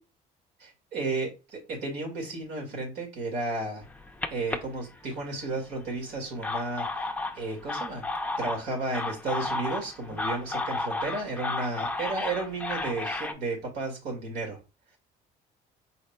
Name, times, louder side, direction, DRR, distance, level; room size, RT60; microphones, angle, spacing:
voice 1, 0.6-3.8 4.3-6.9 7.4-8.1 8.4-14.6, right 3 dB, 80° right, 0 dB, 2.1 m, -33 dB
sound 1, 3.8-5.5 6.2-13.3, left 2 dB, 10° left, 0.5 m, -33 dB
4.2 x 4.1 x 2.2 m, 0.28 s
cardioid pair, 110°, 17 cm